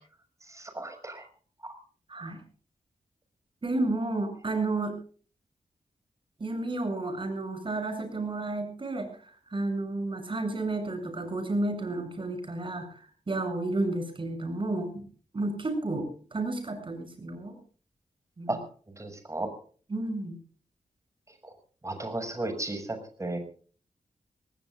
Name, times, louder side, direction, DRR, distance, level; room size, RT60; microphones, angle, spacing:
voice 1, 0.5-1.2 1.6-1.8 18.5-18.6 19.0-19.5 21.8-23.4, right 2 dB, 25° right, 7 dB, 6.4 m, -34 dB
voice 2, 2.1-2.4 3.6-5.0 6.4-15.1 15.3-17.6 18.4-18.6 19.9-20.4, right 2 dB, 40° right, 6 dB, 7.7 m, -32 dB
26.5 x 19.0 x 2.5 m, 0.43 s
wide cardioid pair, 85°, 13 cm